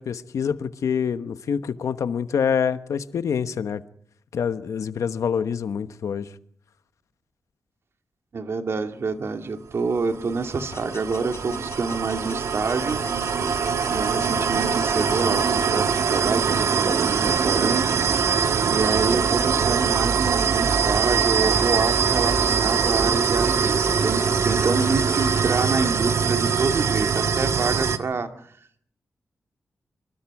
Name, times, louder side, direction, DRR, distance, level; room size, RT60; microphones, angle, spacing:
voice 1, 0.0-3.8 4.3-6.3, left 7 dB, 85° left, 11 dB, 1.2 m, -26 dB
voice 2, 8.3-13.0 13.8-18.0 18.7-28.3, right 4 dB, 55° right, 6 dB, 2.2 m, -27 dB
sound 1, 10.0-28.0, right 6 dB, 70° right, 1.5 m, -23 dB
sound 2, 10.7-20.1 20.3-22.0 22.3-23.9 24.2-25.9, left 4 dB, 55° left, 6.6 m, -41 dB
26.5 x 24.0 x 4.8 m, 0.62 s
wide cardioid pair, 130°, 5 cm